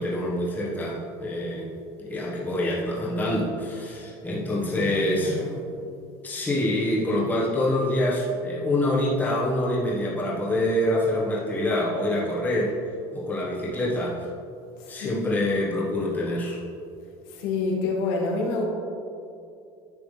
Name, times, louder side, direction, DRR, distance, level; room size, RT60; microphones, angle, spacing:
voice 1, 0.0-1.7 2.0-5.8 6.2-12.7 13.1-14.2 14.9-16.6, left 1 dB, 15° left, -5 dB, 1.4 m, -26 dB
voice 2, 4.5-5.6 15.0-15.4 17.3-18.6, left 3 dB, 90° left, 0 dB, 1.8 m, -28 dB
10.5 x 7.3 x 3.4 m, 2.5 s
cardioid pair, 165°, 13 cm